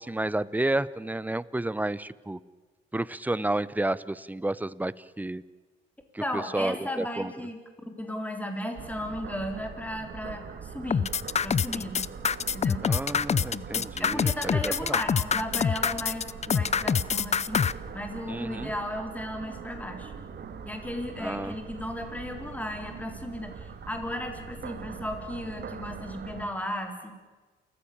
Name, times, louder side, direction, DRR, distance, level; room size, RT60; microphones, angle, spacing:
voice 1, 0.0-2.4 2.9-5.4 6.1-7.3 12.8-15.0 18.3-18.7 21.2-21.5, right 2 dB, 10° right, 19 dB, 0.7 m, -31 dB
voice 2, 6.2-7.6 8.0-11.1 11.4-12.0 12.5-12.8 14.0-20.1 20.7-27.1, left 1 dB, 5° left, 5 dB, 4.0 m, -35 dB
sound 1, 8.8-26.5, right 6 dB, 55° right, 2.3 m, -42 dB
sound 2, 10.9-17.7, left 6 dB, 35° left, 0.6 m, -25 dB
29.0 x 15.0 x 8.8 m, 1.3 s
cardioid pair, 90°, 20 cm